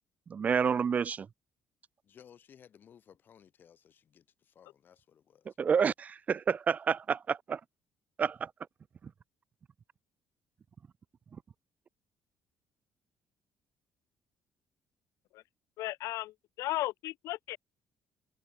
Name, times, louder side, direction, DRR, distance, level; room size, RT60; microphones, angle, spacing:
voice 1, 0.3-1.3 5.6-7.6 8.2-8.5, right 6 dB, 30° right, 0.9 m, -29 dB
voice 2, 2.0-5.6, left 8 dB, 40° left, 7.3 m, -59 dB
voice 3, 15.8-17.6, left 17 dB, 90° left, 1.3 m, -35 dB
cardioid pair, 165°, 5 cm